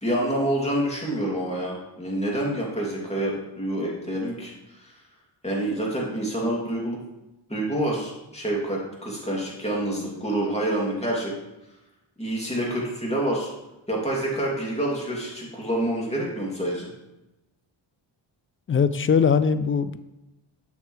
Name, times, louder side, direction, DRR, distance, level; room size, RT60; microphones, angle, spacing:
voice 1, 0.0-4.5 4.8-4.9 5.4-7.0 7.5-11.3 12.2-13.5 13.9-16.9, right 1 dB, 15° left, -3 dB, 2.6 m, -27 dB
voice 2, 18.7-20.0, left 6 dB, 30° left, 14 dB, 0.4 m, -21 dB
6.9 x 6.7 x 3.2 m, 0.96 s
cardioid pair, 60°, 48 cm